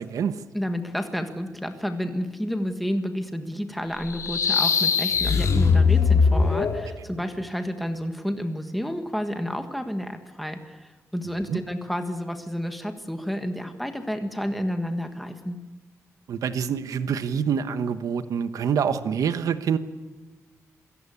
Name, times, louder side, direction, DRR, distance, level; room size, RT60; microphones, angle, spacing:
voice 1, 0.0-0.4 11.5-11.6 16.3-19.8, right 7 dB, 85° right, 11 dB, 1.2 m, -26 dB
voice 2, 0.5-15.6, equal, ahead, 6 dB, 1.5 m, -30 dB
sound 1, 4.0-6.9, left 5 dB, 65° left, 2.5 m, -20 dB
27.0 x 17.0 x 8.4 m, 1.3 s
wide cardioid pair, 150°, 6 cm